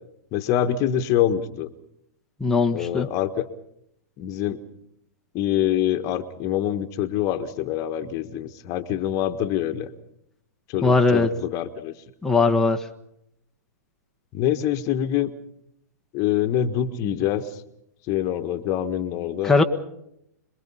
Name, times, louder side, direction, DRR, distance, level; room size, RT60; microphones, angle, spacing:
voice 1, 0.3-1.7 2.7-3.5 4.2-4.6 5.3-9.9 10.7-11.9 14.3-15.3 16.1-17.4 18.1-19.6, left 11 dB, 35° left, 9 dB, 1.5 m, -25 dB
voice 2, 2.4-3.1 10.8-11.3 12.2-12.9 19.4-19.6, left 3 dB, 5° left, 3 dB, 1.3 m, -19 dB
26.5 x 22.0 x 5.6 m, 0.78 s
hypercardioid pair, 115°, 9 cm